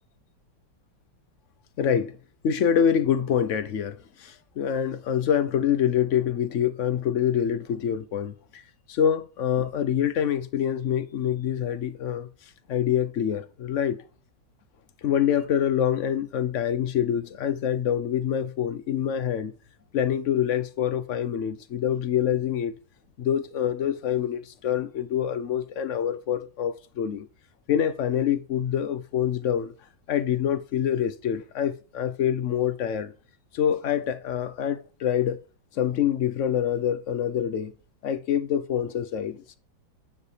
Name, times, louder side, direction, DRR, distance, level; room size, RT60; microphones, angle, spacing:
voice 1, 1.8-2.2 2.4-8.6 8.9-12.3 12.7-14.0 15.0-19.5 19.9-22.8 23.2-27.3 27.7-29.7 30.1-33.1 33.5-35.4 35.7-37.7 38.0-39.6, left 9 dB, 60° left, 0.8 m, -26 dB
9.7 x 4.9 x 4.9 m
omnidirectional pair, 2.0 m